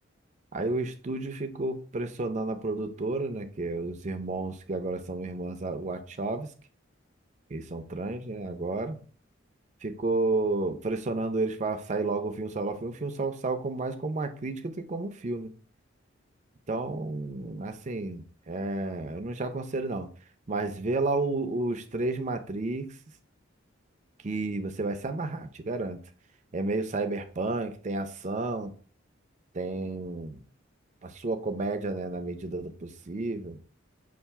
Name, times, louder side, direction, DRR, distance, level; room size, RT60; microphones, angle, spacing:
voice 1, 0.5-6.5 7.5-9.0 9.8-15.5 16.7-20.1 20.5-23.0 24.2-26.0 26.5-28.7 29.5-30.4 31.0-33.6, right 2 dB, 35° right, 0.5 m, -31 dB
5.5 x 2.5 x 3.5 m
head